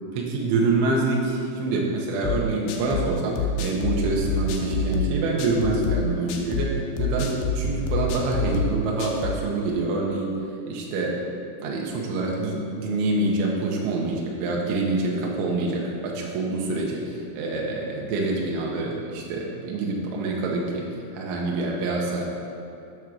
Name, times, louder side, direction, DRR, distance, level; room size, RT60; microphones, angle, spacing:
voice 1, 0.1-11.2 11.6-20.8 21.1-22.3, right 2 dB, 80° right, -2 dB, 3.2 m, -26 dB
sound 1, 2.2-9.4, left 3 dB, 85° left, 2.3 m, -27 dB
9.0 x 3.6 x 6.2 m, 2.7 s
omnidirectional pair, 5.5 m